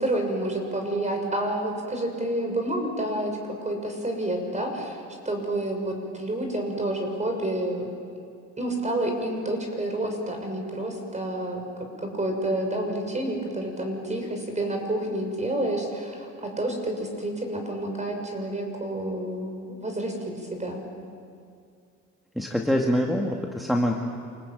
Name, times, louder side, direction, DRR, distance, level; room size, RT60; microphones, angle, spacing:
voice 1, 0.0-5.0 5.2-7.9 8.6-11.6 12.0-20.8, right 1 dB, 25° right, 3 dB, 6.4 m, -29 dB
voice 2, 22.4-23.9, equal, ahead, 0 dB, 2.1 m, -24 dB
28.0 x 20.0 x 9.1 m, 2.4 s
cardioid pair, 90°, 30 cm